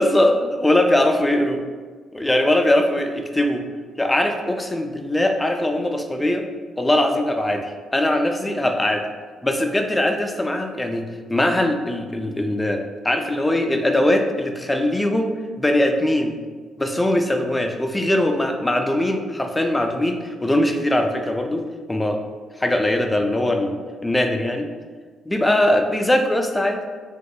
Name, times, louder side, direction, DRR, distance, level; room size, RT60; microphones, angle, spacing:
voice 1, 0.0-1.6 2.1-3.6 4.0-6.5 6.8-9.0 9.4-11.0 11.3-16.3 16.8-21.6 21.9-22.2 22.6-23.7 24.0-24.7 25.3-26.8, left 1 dB, 10° left, 4 dB, 0.3 m, -21 dB
3.0 x 2.9 x 2.7 m, 1.5 s
cardioid pair, 90°, 0 cm